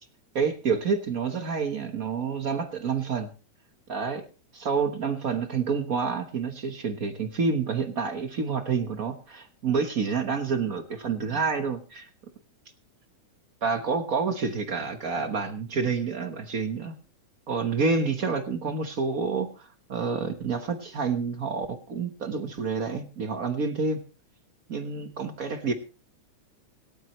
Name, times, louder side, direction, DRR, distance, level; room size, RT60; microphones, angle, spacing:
voice 1, 0.3-3.3 3.9-4.3 4.5-12.1 13.6-16.9 17.5-24.0 24.7-25.7, right 5 dB, 75° right, 7 dB, 0.7 m, -28 dB
26.0 x 9.0 x 3.1 m, 0.34 s
omnidirectional pair, 3.5 m